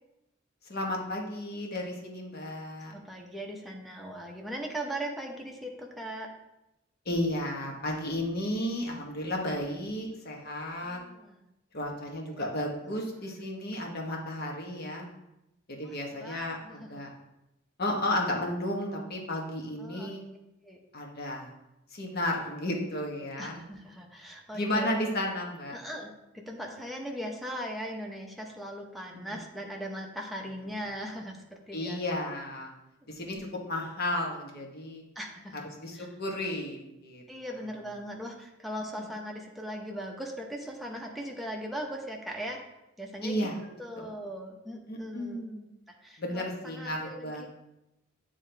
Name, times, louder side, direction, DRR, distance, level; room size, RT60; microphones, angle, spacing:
voice 1, 0.7-2.9 7.0-11.0 11.7-15.1 15.7-17.1 17.8-20.2 20.9-21.5 21.9-23.6 24.5-25.8 29.3-29.4 31.7-32.7 33.1-33.4 33.7-35.0 35.8-37.2 38.9-39.1 43.2-43.6 44.0-44.1 44.9-45.6 46.2-47.5, left 1 dB, 55° left, 0 dB, 1.2 m, -33 dB
voice 2, 2.8-6.3 10.8-11.4 12.3-12.5 15.8-16.0 16.2-16.9 19.8-20.1 20.6-20.8 23.4-24.9 25.7-26.1 26.5-32.0 35.2-36.1 37.3-42.6 43.0-43.5 43.8-45.5 45.9-47.5, equal, ahead, 0 dB, 0.8 m, -39 dB
8.6 x 3.6 x 3.3 m, 0.90 s
head